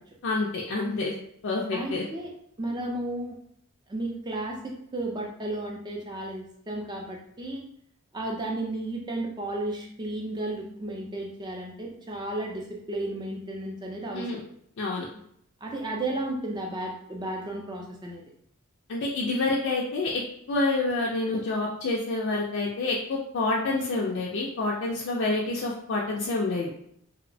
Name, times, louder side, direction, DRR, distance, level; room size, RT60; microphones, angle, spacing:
voice 1, 0.2-1.1 1.4-2.0 14.1-14.4 14.8-15.1 18.9-20.1 20.5-26.7, left 2 dB, 60° left, -4 dB, 0.4 m, -28 dB
voice 2, 1.7-2.3 2.6-3.4 3.9-7.6 8.1-14.4 15.6-18.2, right 1 dB, 20° right, 0 dB, 0.4 m, -33 dB
2.8 x 2.0 x 2.6 m, 0.70 s
head